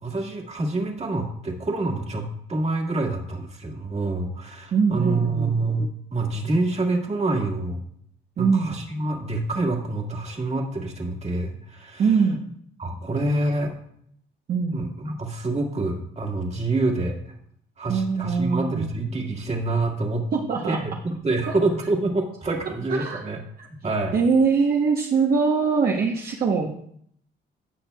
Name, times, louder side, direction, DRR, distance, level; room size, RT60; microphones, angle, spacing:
voice 1, 0.0-7.8 8.4-12.1 12.8-13.7 14.7-17.3 17.8-20.3 20.7-23.4 23.7-24.2, right 2 dB, 35° right, 1 dB, 1.7 m, -27 dB
voice 2, 4.7-5.5 8.4-8.7 12.0-12.4 14.5-14.8 17.9-18.9 20.3-20.8 22.9-23.2 23.6-23.7 24.1-26.7, right 5 dB, 50° right, 0 dB, 0.9 m, -22 dB
15.5 x 5.9 x 2.3 m, 0.69 s
cardioid pair, 90°, 20 cm